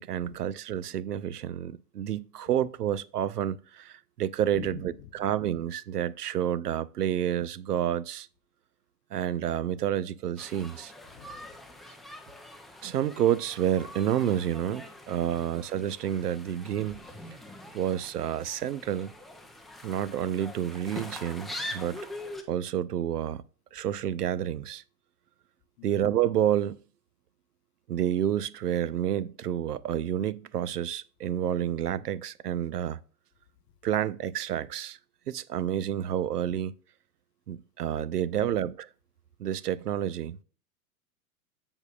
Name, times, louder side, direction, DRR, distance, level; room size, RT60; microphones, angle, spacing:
voice 1, 0.0-8.3 9.1-10.9 12.8-17.0 17.7-19.1 19.8-22.1 22.5-23.4 23.7-24.8 25.8-26.8 27.9-33.0 33.8-35.0 35.3-36.7 37.5-38.9 39.4-40.4, right 10 dB, 85° right, 0.6 m, -29 dB
voice 2, 4.5-5.3 11.1-11.5 15.3-15.7 25.8-26.0 38.2-38.5, left 10 dB, 45° left, 0.8 m, -46 dB
sound 1, 10.4-22.4, left 1 dB, ahead, 0.4 m, -44 dB
15.0 x 5.3 x 2.4 m
hypercardioid pair, 105°, 45 cm